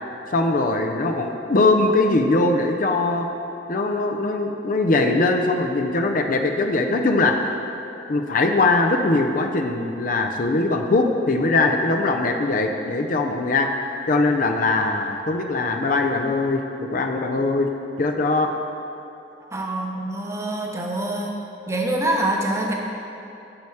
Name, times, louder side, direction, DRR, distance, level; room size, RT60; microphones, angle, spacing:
voice 1, 0.3-3.3 3.7-7.5 8.1-17.7 18.0-18.5, left 2 dB, 50° left, 4 dB, 0.5 m, -21 dB
voice 2, 19.4-21.3 21.7-22.7, right 1 dB, 15° right, 0 dB, 0.9 m, -25 dB
8.7 x 7.0 x 4.8 m, 2.9 s
head